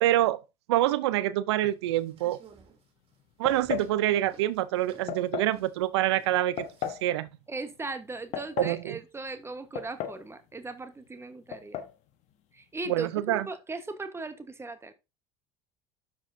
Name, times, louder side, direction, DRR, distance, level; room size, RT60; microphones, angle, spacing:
voice 1, 0.0-0.4 0.7-2.4 3.4-7.3 8.6-9.0 12.9-13.5, right 14 dB, 80° right, 0.6 m, -26 dB
sound 1, 1.7-7.1, right 4 dB, 45° right, 2.5 m, -56 dB
sound 2, 3.5-3.9 5.1-5.6 6.6-7.1 8.1-8.8 9.8-10.3 10.5-10.6 11.5-11.9, left 10 dB, 60° left, 1.1 m, -34 dB
voice 2, 7.5-11.8 12.5-14.9, right 3 dB, 20° right, 1.2 m, -38 dB
12.5 x 4.6 x 2.6 m
hypercardioid pair, 75°, 14 cm